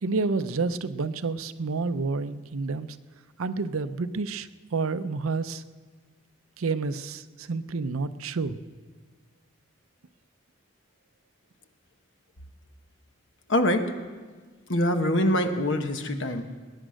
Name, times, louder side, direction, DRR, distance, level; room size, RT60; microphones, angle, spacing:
voice 1, 0.0-2.9 3.4-5.6 6.6-8.6, right 4 dB, 80° right, 12 dB, 0.6 m, -29 dB
voice 2, 13.5-14.0 14.7-16.4, left 1 dB, 60° left, 6 dB, 1.2 m, -24 dB
20.5 x 10.0 x 6.4 m, 1.4 s
head